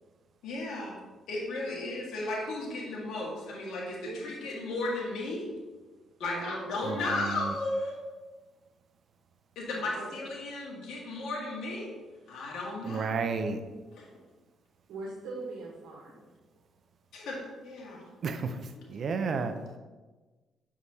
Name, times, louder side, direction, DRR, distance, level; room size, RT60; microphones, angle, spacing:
voice 1, 0.4-1.0 1.3-5.5 6.2-8.0 9.6-11.9 12.3-13.2 13.9-14.1 17.1-18.0, left 2 dB, 80° left, -3 dB, 1.7 m, -35 dB
voice 2, 6.2-6.8 9.7-10.2 14.9-16.3, right 3 dB, 80° right, -3 dB, 1.2 m, -41 dB
voice 3, 6.8-7.5 12.8-13.6 18.2-18.6 18.9-19.5, right 5 dB, 55° right, 8 dB, 0.6 m, -31 dB
7.3 x 4.7 x 2.8 m, 1.3 s
cardioid pair, 90°, 0 cm